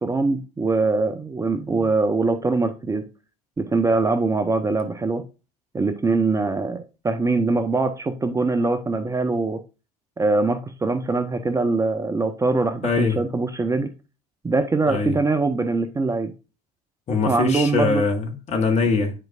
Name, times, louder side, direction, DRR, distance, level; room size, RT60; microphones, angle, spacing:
voice 1, 0.0-3.0 3.6-5.2 5.7-9.6 10.2-13.9 14.4-16.3 17.3-18.0, right 3 dB, 15° right, 0.7 m, -22 dB
voice 2, 1.5-1.9 12.8-13.2 14.9-15.1 17.1-19.1, left 4 dB, 35° left, 1.7 m, -23 dB
9.9 x 4.5 x 2.5 m
figure-of-eight pair, 70°, 20 cm